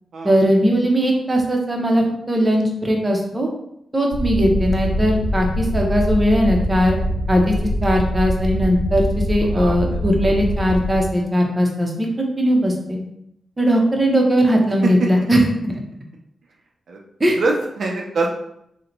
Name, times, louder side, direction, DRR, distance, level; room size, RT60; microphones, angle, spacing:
voice 1, 0.2-3.5 3.9-7.0 7.3-13.0 13.6-15.7 17.2-17.4, equal, 25° right, 0 dB, 0.8 m, -19 dB
sound 1, 4.1-11.1, equal, 60° left, 0.8 m, -23 dB
voice 2, 9.4-10.1 14.8-15.3 16.9-17.0 17.4-18.3, right 3 dB, 70° right, -1 dB, 0.5 m, -24 dB
2.9 x 2.1 x 3.8 m, 0.75 s
cardioid pair, 75°, 0 cm